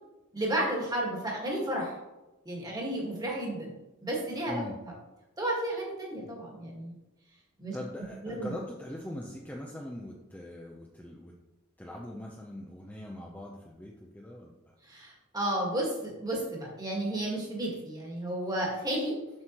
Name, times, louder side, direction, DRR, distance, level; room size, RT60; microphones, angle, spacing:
voice 1, 0.3-1.9 2.4-3.8 4.0-4.9 5.4-6.9 7.6-7.8 8.2-8.5 14.9-19.2, right 1 dB, 15° right, -2 dB, 1.6 m, -32 dB
voice 2, 7.7-11.3 11.8-14.5, left 1 dB, 5° left, -2 dB, 0.5 m, -41 dB
7.7 x 6.2 x 2.9 m, 1.1 s
head